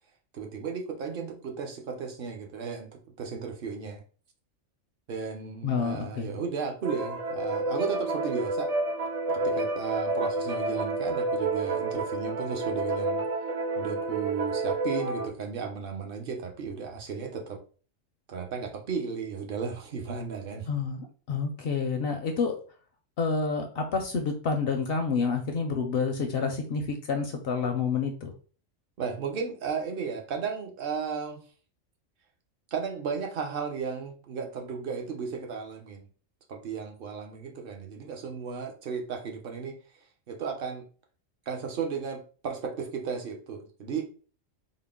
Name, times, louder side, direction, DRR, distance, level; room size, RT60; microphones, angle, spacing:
voice 1, 0.3-4.0 5.1-8.7 9.3-13.2 13.8-17.6 18.3-20.7 29.0-31.4 32.7-36.0 36.5-39.8 40.3-40.8 41.5-44.0, right 5 dB, 50° right, 3 dB, 0.8 m, -34 dB
voice 2, 5.6-6.4 20.7-22.5 23.2-28.3, left 5 dB, 65° left, 4 dB, 0.6 m, -29 dB
sound 1, 6.8-15.3, right 2 dB, 70° right, 0.3 m, -30 dB
3.8 x 2.1 x 3.5 m, 0.39 s
omnidirectional pair, 1.4 m